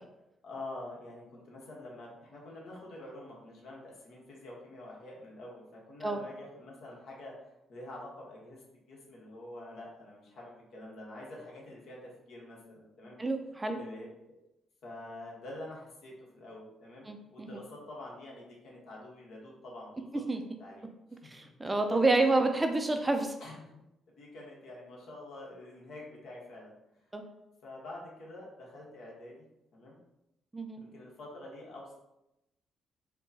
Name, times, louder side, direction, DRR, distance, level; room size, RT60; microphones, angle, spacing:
voice 1, 0.4-7.3 7.7-8.6 8.9-13.2 13.8-14.1 14.8-20.0 20.6-20.9 21.2-22.4 23.4-23.8 24.1-26.7 27.6-29.4 29.7-30.0 30.8-31.9, left 1 dB, 70° left, -3 dB, 1.1 m, -47 dB
voice 2, 13.2-13.8 17.0-17.6 20.3-20.4 21.2-23.3 27.1-27.2 30.5-30.8, right 2 dB, 15° right, 5 dB, 0.4 m, -28 dB
4.5 x 2.2 x 2.7 m, 0.91 s
cardioid pair, 90°, 0 cm